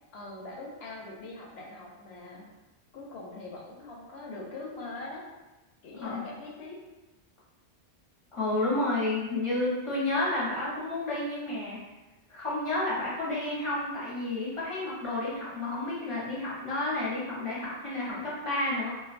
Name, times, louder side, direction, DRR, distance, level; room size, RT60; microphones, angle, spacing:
voice 1, 0.1-2.5 2.9-5.3 5.8-6.8, left 2 dB, 70° left, -2 dB, 0.8 m, -42 dB
voice 2, 8.3-11.8 12.3-18.9, left 2 dB, 30° left, -8 dB, 0.7 m, -31 dB
2.4 x 2.2 x 2.4 m, 1.1 s
omnidirectional pair, 1.2 m